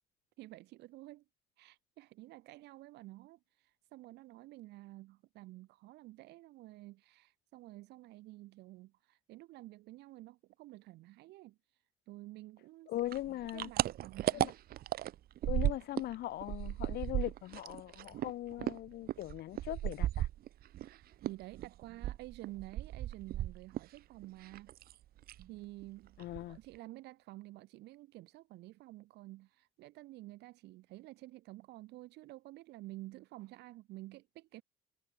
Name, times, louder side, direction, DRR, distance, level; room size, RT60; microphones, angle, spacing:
voice 1, 0.4-1.2 1.6-12.9 13.5-14.6 17.2-17.3 20.8-24.7 25.5-26.2 26.5-34.6, right 18 dB, 85° right, 4.4 m, -51 dB
voice 2, 12.9-13.7 14.3-14.5 15.4-20.3 26.2-26.6, left 14 dB, 70° left, 2.7 m, -40 dB
sound 1, 13.1-16.1 16.4-20.9 21.2-24.0 24.2-24.9 25.2-25.5 25.8-25.9 26.2-26.8, right 13 dB, 65° right, 1.2 m, -35 dB
cardioid pair, 110°, 17 cm